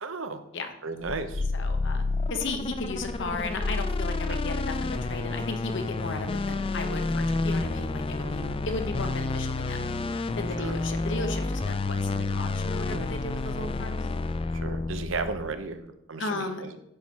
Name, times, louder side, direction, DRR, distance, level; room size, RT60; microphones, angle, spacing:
voice 1, 0.0-0.4 0.8-1.4 4.3-4.4 8.2-8.6 10.6-10.8 12.9-13.0 14.5-16.7, right 3 dB, 65° right, 9 dB, 0.9 m, -35 dB
sound 1, 1.0-15.6, left 3 dB, 25° left, 0.4 m, -30 dB
voice 2, 1.5-2.0 2.3-9.9 10.4-14.0 16.2-16.6, left 3 dB, 65° left, 6 dB, 1.2 m, -35 dB
9.9 x 6.3 x 4.3 m, 0.78 s
head